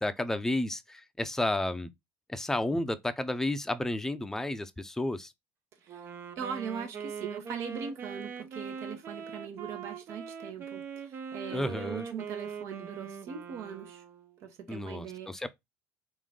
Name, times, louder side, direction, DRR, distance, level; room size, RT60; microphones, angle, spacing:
voice 1, 0.0-1.9 2.3-5.3 11.5-12.1 14.7-15.5, left 1 dB, 10° left, 0.5 m, -32 dB
voice 2, 5.8-14.0 14.4-15.5, right 7 dB, 65° right, 1.0 m, -41 dB
Wind instrument woodwind instrument, 5.9-14.5, right 6 dB, 45° right, 0.6 m, -42 dB
3.6 x 2.6 x 3.6 m
supercardioid pair, 85°, 5 cm